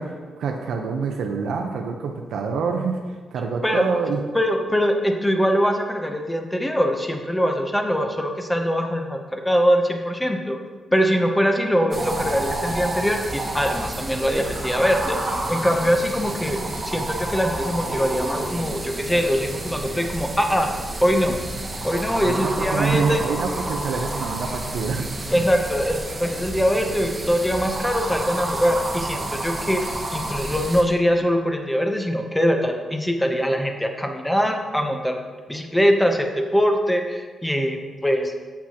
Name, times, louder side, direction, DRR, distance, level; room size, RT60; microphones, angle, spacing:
voice 1, 0.0-4.2 22.2-25.4, right 5 dB, 80° right, 2 dB, 0.6 m, -26 dB
voice 2, 4.3-10.6 10.9-15.2 15.5-16.6 16.8-20.7 21.0-21.4 21.8-23.2 25.3-29.8 30.1-35.2 35.5-38.3, equal, 5° left, 4 dB, 0.6 m, -22 dB
sound 1, 11.9-30.8, right 1 dB, 20° right, 1.0 m, -30 dB
8.7 x 7.3 x 2.8 m, 1.4 s
wide cardioid pair, 155°, 0 cm